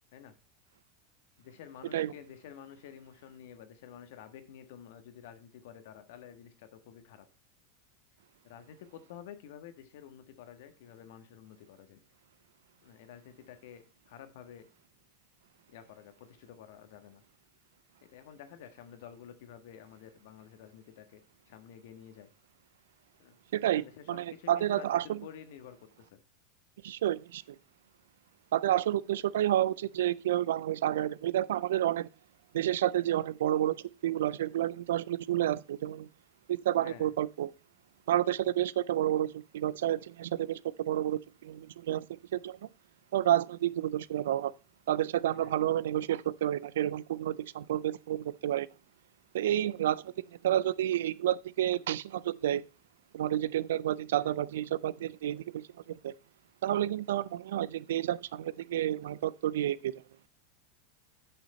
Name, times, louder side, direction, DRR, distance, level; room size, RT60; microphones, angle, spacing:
voice 1, 1.4-7.3 8.4-12.0 12.8-14.7 15.7-17.2 18.0-21.2 21.5-22.3 23.2-23.3 23.7-26.2 36.8-37.1 45.3-45.6 54.1-54.4, left 9 dB, 70° left, 1.4 m, -50 dB
voice 2, 23.5-25.2 26.8-27.4 28.5-32.1 32.5-33.8 34.0-36.1 36.5-37.5 38.1-42.1 42.3-42.6 43.1-44.5 44.9-48.7 49.3-50.1 50.4-52.6 53.1-55.7 56.0-56.1 56.6-60.0, right 12 dB, 80° right, 0.4 m, -30 dB
8.6 x 6.4 x 4.2 m
hypercardioid pair, 105°, 0 cm